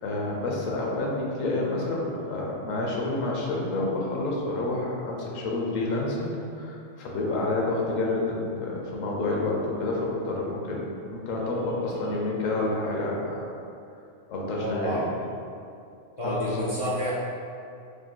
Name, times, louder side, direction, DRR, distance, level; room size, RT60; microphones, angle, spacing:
voice 1, 0.0-13.5 14.3-15.1 16.2-16.7, left 2 dB, 85° left, -2 dB, 1.1 m, -29 dB
voice 2, 14.5-15.1 16.2-17.1, equal, 45° left, -9 dB, 0.4 m, -30 dB
5.0 x 2.8 x 2.2 m, 2.5 s
omnidirectional pair, 1.3 m